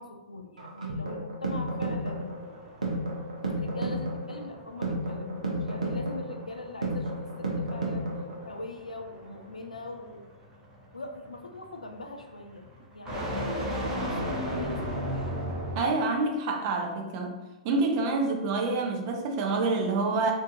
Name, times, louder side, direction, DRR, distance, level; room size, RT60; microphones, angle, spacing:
voice 1, 0.0-2.3 3.4-8.1 8.4-10.2 10.9-12.7 12.9-15.3, left 2 dB, 90° left, 4 dB, 0.4 m, -41 dB
sound 1, 0.6-8.6, right 1 dB, 80° right, 0.7 m, -32 dB
sound 2, 1.5-16.1, equal, 20° right, 0.8 m, -37 dB
voice 2, 15.7-17.4 17.6-20.3, right 3 dB, 45° right, 3 dB, 0.5 m, -27 dB
2.6 x 2.4 x 2.6 m, 1.1 s
figure-of-eight pair, 110°, 4 cm